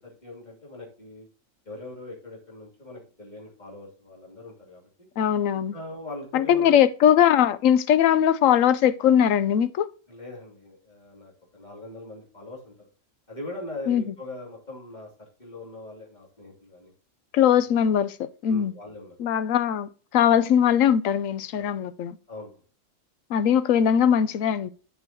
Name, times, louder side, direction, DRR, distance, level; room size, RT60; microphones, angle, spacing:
voice 1, 0.2-1.3 1.7-4.9 5.7-6.8 10.1-12.7 13.3-15.1 15.4-16.9 18.5-19.2 21.6-21.7 22.3-22.6, left 2 dB, 35° left, 2.8 m, -41 dB
voice 2, 5.2-5.7 6.3-9.9 13.9-14.1 17.3-18.7 19.2-22.2 23.3-24.7, left 9 dB, 85° left, 1.0 m, -21 dB
10.5 x 5.5 x 2.8 m
omnidirectional pair, 1.4 m